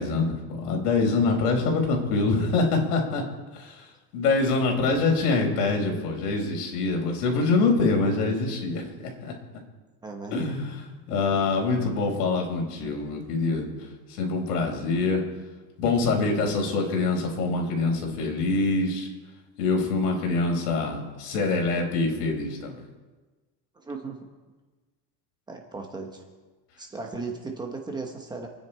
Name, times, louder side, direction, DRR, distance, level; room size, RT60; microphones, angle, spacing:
voice 1, 0.0-3.2 3.5-3.8 4.1-9.3 10.3-13.7 14.1-15.2 15.8-19.1 19.6-22.8, left 3 dB, 80° left, 1 dB, 4.9 m, -25 dB
voice 2, 10.0-10.6 23.7-24.2 25.5-26.3 26.8-28.5, right 3 dB, 10° right, 2 dB, 1.2 m, -36 dB
28.5 x 9.9 x 4.5 m, 1.3 s
cardioid pair, 180°, 46 cm